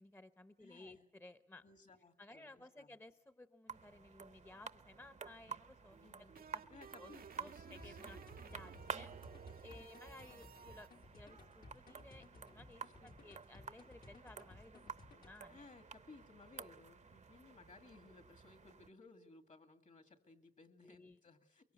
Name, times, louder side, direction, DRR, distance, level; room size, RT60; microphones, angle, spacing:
voice 1, 0.0-1.6 2.2-6.6 7.0-15.7 20.8-21.2, left 2 dB, 15° left, 11 dB, 0.8 m, -58 dB
voice 2, 0.6-1.0 1.6-2.9 6.0-6.3 6.7-8.3 9.5-9.9 10.3-10.5 10.7-10.8 13.0-13.2 15.5-21.7, left 3 dB, 60° left, 7 dB, 2.3 m, -61 dB
sound 1, 3.7-18.9, right 5 dB, 50° right, 0.8 m, -52 dB
sound 2, 5.9-10.9, right 6 dB, 85° right, 0.8 m, -55 dB
sound 3, 7.8-15.5, left 2 dB, 80° left, 3.0 m, -60 dB
23.5 x 23.0 x 8.0 m, 0.97 s
wide cardioid pair, 85°, 15 cm